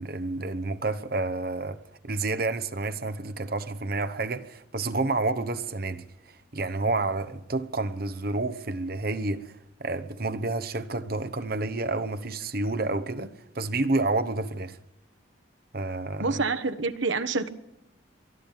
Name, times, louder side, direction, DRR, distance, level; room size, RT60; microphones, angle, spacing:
voice 1, 0.0-1.8 2.0-14.8 15.7-16.4, right 2 dB, 50° right, 1.0 m, -29 dB
voice 2, 16.2-17.5, right 3 dB, 70° right, 1.2 m, -27 dB
23.5 x 12.5 x 9.0 m
head